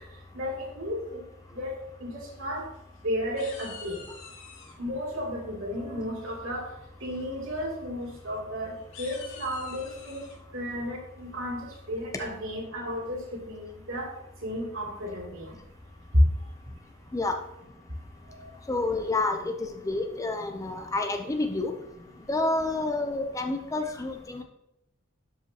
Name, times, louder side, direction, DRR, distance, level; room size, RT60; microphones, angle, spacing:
voice 1, 0.3-1.2 1.5-2.7 3.0-4.0 4.8-6.7 7.0-10.2 10.5-14.1 14.4-15.6 16.1-16.2 18.4-18.5 20.6-20.7, equal, 75° right, -3 dB, 2.7 m, -32 dB
sound 1, 2.4-3.0 3.4-4.7 6.2-6.6 7.0-7.2 7.5-7.6 8.0-8.2 8.8-10.4, left 5 dB, 80° left, 1.9 m, -47 dB
voice 2, 18.7-19.5 19.8-21.7 22.3-24.4, left 2 dB, 15° left, 5 dB, 0.5 m, -29 dB
12.0 x 5.3 x 2.9 m, 0.84 s
head